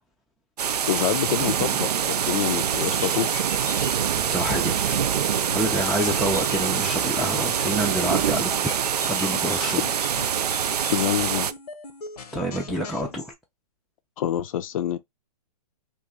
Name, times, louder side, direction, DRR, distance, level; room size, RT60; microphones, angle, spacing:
sound 1, 0.6-11.5, right 8 dB, 85° right, 0.4 m, -25 dB
voice 1, 0.9-3.4 10.9-11.5 14.2-15.0, left 11 dB, 60° left, 0.5 m, -26 dB
sound 2, 2.7-13.3, left 5 dB, 80° left, 0.8 m, -41 dB
voice 2, 4.3-5.0 5.5-8.7 9.1-9.8 12.3-13.3, equal, ahead, 0.4 m, -28 dB
2.9 x 2.5 x 3.5 m
hypercardioid pair, 130°, 20 cm